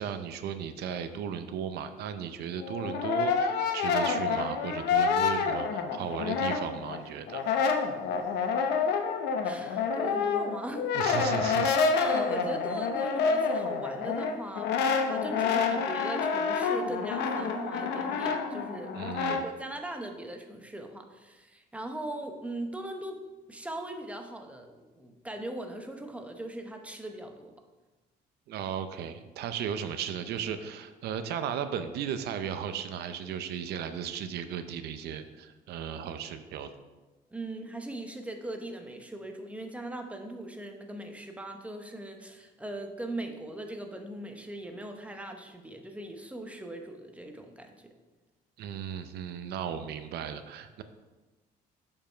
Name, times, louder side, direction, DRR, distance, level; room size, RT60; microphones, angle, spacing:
voice 1, 0.0-7.4 10.9-11.8 18.9-19.4 28.5-36.7 48.6-50.8, right 8 dB, 75° right, 10 dB, 0.6 m, -36 dB
Brass instrument, 2.6-7.0 7.3-19.4, left 5 dB, 80° left, 0.8 m, -28 dB
voice 2, 8.7-9.0 9.4-11.0 11.9-18.9 19.2-23.2 23.5-27.5 37.3-47.9, right 1 dB, 10° right, 4 dB, 0.9 m, -40 dB
6.9 x 5.4 x 4.5 m, 1.2 s
cardioid pair, 110°, 17 cm